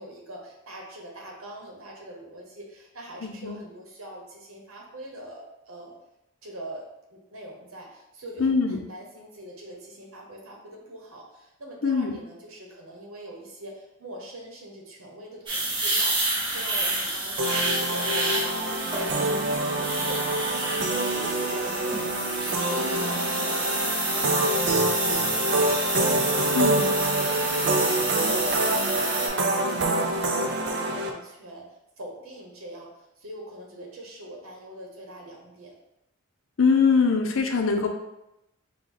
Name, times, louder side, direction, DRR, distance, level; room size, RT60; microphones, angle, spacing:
voice 1, 0.0-5.9 6.4-19.4 20.0-27.9 28.2-31.7 32.0-35.7, right 1 dB, 80° right, -1 dB, 1.0 m, -43 dB
voice 2, 3.2-3.6 8.4-8.8 11.8-12.2 26.5-26.9 36.6-37.9, left 5 dB, 60° left, 3 dB, 0.5 m, -22 dB
sound 1, 15.5-29.3, right 2 dB, 25° right, 0.8 m, -29 dB
sound 2, 17.4-31.1, right 2 dB, 55° right, 0.4 m, -26 dB
4.5 x 2.3 x 3.8 m, 0.88 s
head